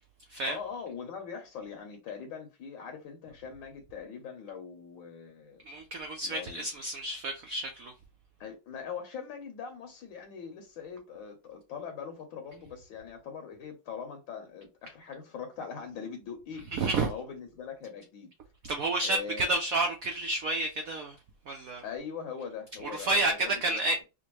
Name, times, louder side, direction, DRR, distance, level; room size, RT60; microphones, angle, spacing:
voice 1, 0.5-5.6 6.2-6.7 8.4-16.6 17.1-18.3 19.0-19.6 21.8-23.8, left 6 dB, 75° left, 1.4 m, -41 dB
voice 2, 5.7-7.9 16.7-17.1 18.6-21.2 21.5-21.8 22.9-24.0, right 2 dB, 80° right, 0.7 m, -30 dB
5.1 x 2.1 x 3.0 m
omnidirectional pair, 2.2 m